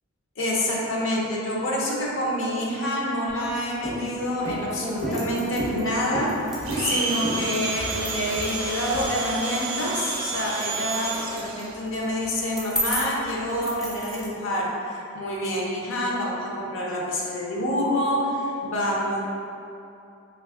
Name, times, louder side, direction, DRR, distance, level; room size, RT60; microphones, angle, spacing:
voice 1, 0.4-19.2, left 1 dB, 65° left, -3 dB, 0.5 m, -27 dB
Walk footsteps, 3.3-3.5 3.8-4.2 4.5-9.1, right 1 dB, 90° left, 1.1 m, -32 dB
sound 1, 4.7-14.3, equal, ahead, 0.3 m, -36 dB
Domestic sounds home sounds, 6.6-11.7, right 4 dB, 70° right, 0.4 m, -30 dB
3.3 x 2.3 x 3.5 m, 2.7 s
head